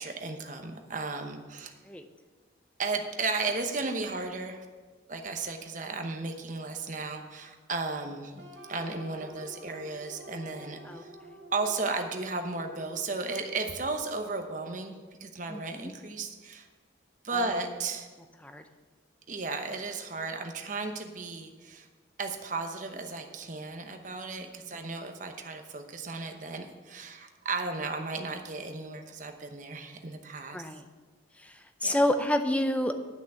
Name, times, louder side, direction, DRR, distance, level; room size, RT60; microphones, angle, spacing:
voice 1, 0.0-1.7 2.8-4.6 5.1-8.3 8.7-11.1 11.5-14.9 15.2-16.7 17.2-18.1 19.3-21.9 22.2-30.6 31.8-32.0, right 3 dB, 40° right, 5 dB, 1.0 m, -34 dB
sound 1, 8.4-13.3, equal, 70° right, 2.2 m, -49 dB
voice 2, 15.5-15.9 18.4-18.6 24.4-24.5 30.5-30.8 31.4-33.0, left 1 dB, 5° left, 7 dB, 0.5 m, -29 dB
10.5 x 6.0 x 6.8 m, 1.4 s
head